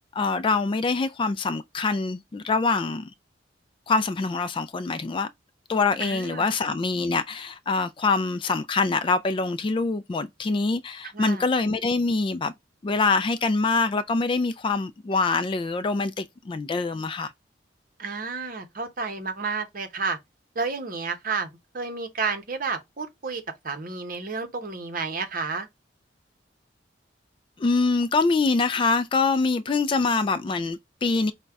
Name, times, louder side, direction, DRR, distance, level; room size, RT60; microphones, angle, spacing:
voice 1, 0.1-3.1 3.9-5.3 5.7-12.5 12.8-17.3 27.6-31.3, left 3 dB, 25° left, 0.3 m, -24 dB
voice 2, 6.0-6.5 11.1-11.4 18.0-20.2 20.5-25.7, right 4 dB, 50° right, 0.9 m, -31 dB
5.2 x 2.2 x 3.5 m
head